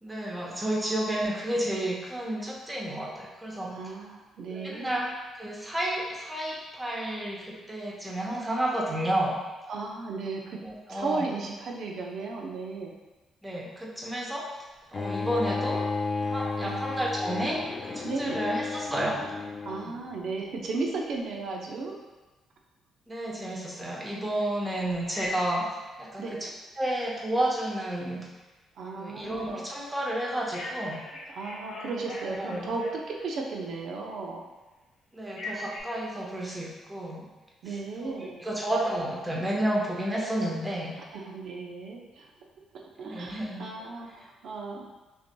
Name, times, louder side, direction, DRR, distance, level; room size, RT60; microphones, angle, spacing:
voice 1, 0.0-3.7 4.5-9.3 10.6-11.3 13.4-14.4 14.9-15.9 16.2-19.2 19.8-19.9 23.1-25.6 26.0-26.5 26.8-28.2 28.9-31.0 32.2-32.7 35.1-37.2 37.7-40.9 43.0-43.6, right 1 dB, 15° right, -3 dB, 1.0 m, -31 dB
voice 2, 3.7-4.9 9.7-10.6 10.9-12.9 16.6-16.8 18.0-18.4 19.7-21.9 26.2-26.4 28.8-29.6 31.3-34.4 37.6-38.4 41.1-42.3 43.0-44.1 44.4-44.8, right 3 dB, 70° right, 0 dB, 0.6 m, -35 dB
Bowed string instrument, 14.9-20.0, left 4 dB, 40° left, 0.3 m, -32 dB
Telephone, 25.1-25.7 30.5-33.4 35.3-35.8, left 1 dB, 80° left, 1.0 m, -39 dB
5.8 x 2.7 x 2.2 m, 1.2 s
cardioid pair, 90°, 0 cm